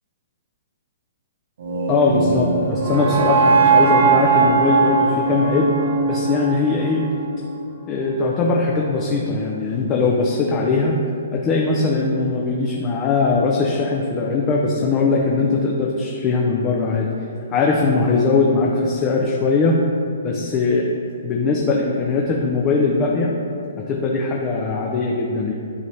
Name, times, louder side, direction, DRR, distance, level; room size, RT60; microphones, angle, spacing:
sound 1, 1.6-7.7, right 4 dB, 55° right, 1.0 m, -19 dB
voice 1, 1.9-5.7 6.0-7.0 7.9-11.0 11.3-17.1 17.5-19.8 20.2-20.9 21.2-23.3 23.9-25.5, left 3 dB, 15° left, -1 dB, 0.4 m, -20 dB
11.0 x 4.1 x 3.3 m, 2.6 s
hypercardioid pair, 180°, 0 cm